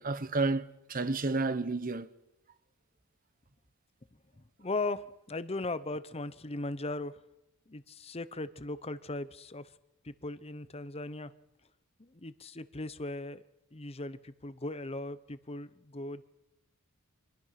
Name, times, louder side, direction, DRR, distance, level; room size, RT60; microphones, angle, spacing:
voice 1, 0.0-2.1, right 3 dB, 40° right, 1.1 m, -31 dB
voice 2, 4.4-7.2 7.7-9.7 10.0-11.3 12.0-13.4 13.7-16.2, left 2 dB, 25° left, 0.9 m, -38 dB
26.0 x 21.0 x 5.9 m
head